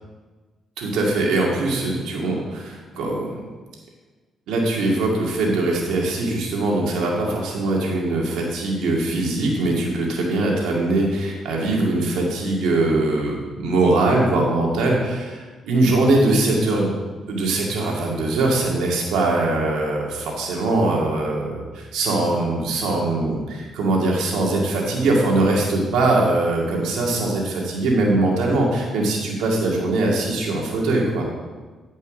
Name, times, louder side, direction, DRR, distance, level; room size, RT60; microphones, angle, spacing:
voice 1, 0.8-3.3 4.5-16.9 17.3-31.3, right 2 dB, 90° right, -2 dB, 2.1 m, -21 dB
10.5 x 5.4 x 5.1 m, 1.3 s
cardioid pair, 85°, 0 cm